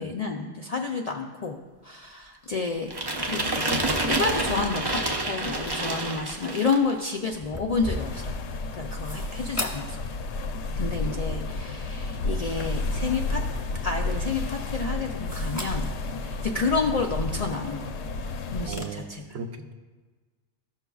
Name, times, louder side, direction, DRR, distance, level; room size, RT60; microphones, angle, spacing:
voice 1, 0.0-1.6 1.8-2.9 3.2-8.4 8.7-10.0 10.8-13.4 13.8-15.9 16.2-17.9 18.5-19.4, left 4 dB, 55° left, 2 dB, 0.4 m, -30 dB
sound 1, 2.9-6.9, right 2 dB, 30° right, 0.4 m, -28 dB
sound 2, 7.3-18.8, left 1 dB, 15° left, 1.0 m, -41 dB
sound 3, 7.8-18.7, left 2 dB, 80° left, 0.9 m, -31 dB
voice 2, 18.6-19.7, right 4 dB, 75° right, 6 dB, 0.9 m, -37 dB
14.0 x 5.9 x 2.3 m, 1.4 s
omnidirectional pair, 1.2 m